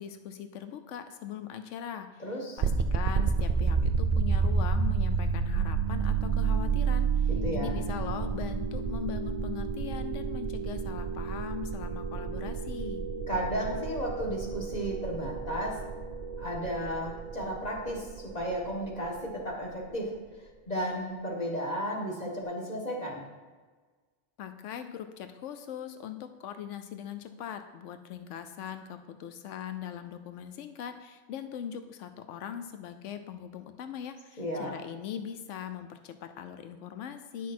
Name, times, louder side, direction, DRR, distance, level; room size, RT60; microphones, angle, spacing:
voice 1, 0.0-2.2 2.6-13.0 24.4-37.5, left 9 dB, 85° left, 9 dB, 0.9 m, -40 dB
voice 2, 2.2-2.6 7.3-7.7 13.3-15.8 16.4-20.1 20.4-23.2 34.4-34.8, equal, 35° left, -1 dB, 1.6 m, -34 dB
sound 1, 2.6-19.5, right 5 dB, 45° right, 0.5 m, -30 dB
9.2 x 6.1 x 4.3 m, 1.4 s
omnidirectional pair, 1.2 m